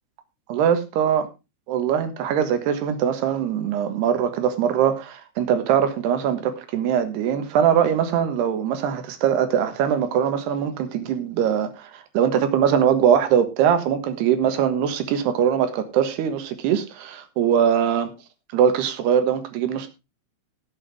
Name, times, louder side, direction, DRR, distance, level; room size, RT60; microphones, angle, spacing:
voice 1, 0.5-1.3 1.7-18.1 18.5-19.9, right 8 dB, 80° right, 9 dB, 3.5 m, -22 dB
17.0 x 7.7 x 3.5 m, 0.26 s
omnidirectional pair, 4.7 m